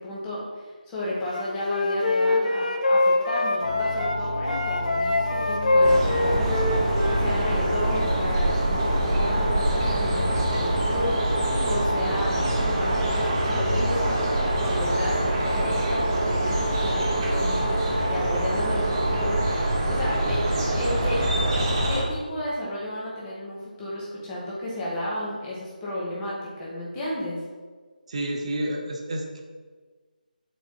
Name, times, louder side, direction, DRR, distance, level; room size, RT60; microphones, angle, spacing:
voice 1, 0.0-14.1 14.6-20.4 20.7-21.2 21.9-27.4, left 1 dB, 10° left, -7 dB, 1.1 m, -33 dB
Wind instrument woodwind instrument, 1.3-4.2 4.5-8.0, left 2 dB, 50° left, 0.7 m, -24 dB
sound 1, 3.6-19.6, equal, 85° left, 1.8 m, -31 dB
sound 2, 5.8-22.0, right 1 dB, 20° right, 1.1 m, -25 dB
voice 2, 28.1-29.4, right 1 dB, 40° right, 1 dB, 0.8 m, -30 dB
9.0 x 4.5 x 2.9 m, 1.5 s
figure-of-eight pair, 170°, 5 cm